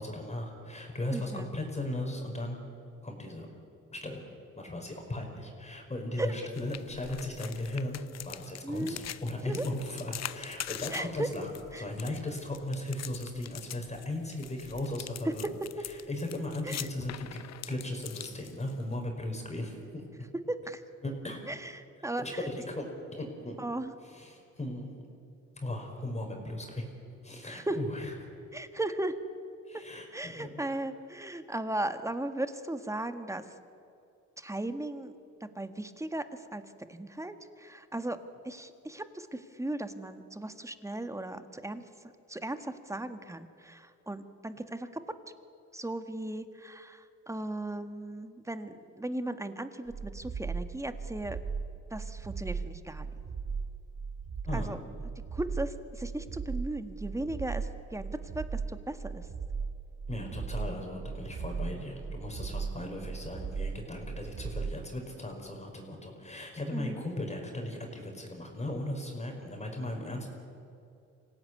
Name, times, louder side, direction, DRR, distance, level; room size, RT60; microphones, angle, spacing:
voice 1, 0.0-2.6 3.0-3.5 3.9-4.2 4.6-8.0 8.2-11.5 11.8-15.4 15.9-17.4 17.7-20.0 21.0-21.4 22.2-22.9 23.1-23.5 24.0-24.9 25.6-26.9 27.2-28.1 29.7-30.5 54.4-54.7 60.1-70.3, left 1 dB, 20° left, 2 dB, 5.2 m, -37 dB
voice 2, 1.1-1.5 6.2-6.3 8.6-9.0 9.5-9.7 10.9-11.3 11.7-11.8 15.2-15.3 16.6-16.9 20.5-20.8 21.5-22.5 23.6-23.9 27.4-27.8 28.5-29.1 30.1-33.4 34.4-35.1 35.4-36.6 36.9-38.2 38.4-41.9 42.3-45.0 45.7-51.4 51.9-53.1 54.5-54.8 55.3-59.3 66.7-67.0, right 1 dB, 10° right, 9 dB, 1.7 m, -36 dB
sound 1, 6.5-19.0, left 11 dB, 60° left, 0.9 m, -44 dB
sound 2, 49.9-64.8, right 5 dB, 50° right, 2.6 m, -37 dB
26.0 x 17.0 x 9.6 m, 2.6 s
cardioid pair, 90°, 30 cm